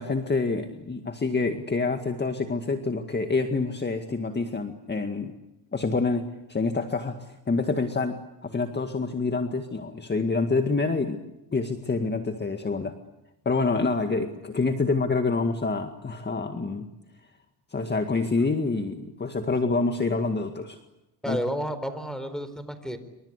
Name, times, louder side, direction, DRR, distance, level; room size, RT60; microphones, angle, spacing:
voice 1, 0.0-5.3 5.7-6.2 6.5-11.2 11.5-13.0 13.5-16.9 17.7-20.8 21.3-21.4, left 3 dB, 25° left, 6 dB, 2.0 m, -27 dB
voice 2, 21.2-23.0, equal, ahead, 11 dB, 4.4 m, -31 dB
28.5 x 25.0 x 8.3 m, 0.92 s
cardioid pair, 105°, 41 cm